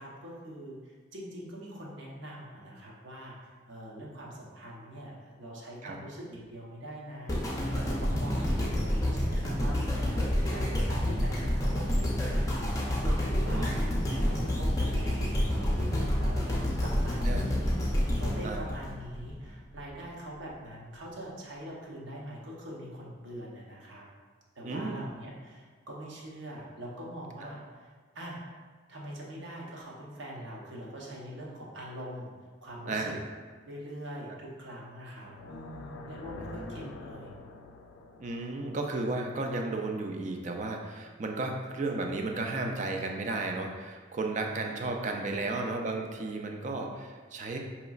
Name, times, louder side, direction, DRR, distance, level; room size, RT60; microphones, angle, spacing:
voice 1, 0.0-13.8 14.1-16.5 16.8-17.8 18.2-24.1 24.6-27.9 28.1-28.4 28.9-32.3 32.6-33.2 33.6-37.3 45.2-45.7, equal, 70° right, -4 dB, 0.8 m, -43 dB
sound 1, 7.3-19.5 20.0-20.1, equal, 15° left, 0.5 m, -28 dB
voice 2, 24.6-25.0 27.4-27.5 32.9-33.2 36.4-36.6 38.2-47.6, right 2 dB, 40° right, 2 dB, 0.4 m, -33 dB
sound 2, 35.2-40.3, left 3 dB, 80° left, 0.4 m, -47 dB
4.9 x 2.9 x 2.4 m, 1.6 s
head